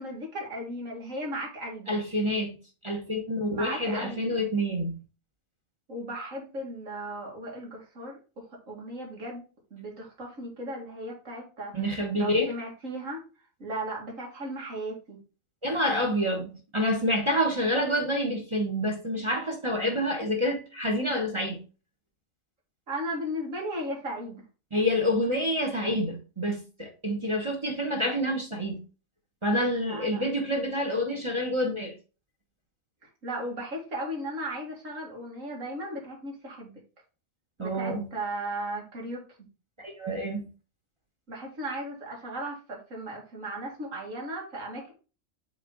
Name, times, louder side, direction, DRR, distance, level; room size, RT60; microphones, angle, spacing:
voice 1, 0.0-2.0 3.5-4.4 5.9-9.4 9.7-13.2 13.6-15.2 22.9-24.4 29.8-30.3 33.2-36.7 37.6-39.2 41.3-44.9, right 1 dB, 70° right, 2.5 m, -36 dB
voice 2, 1.9-2.6 2.8-4.9 11.7-12.5 15.6-21.6 24.7-28.8 29.4-31.9 37.6-38.1 39.8-40.5, equal, 25° right, 1.1 m, -28 dB
6.5 x 3.8 x 3.8 m
omnidirectional pair, 1.4 m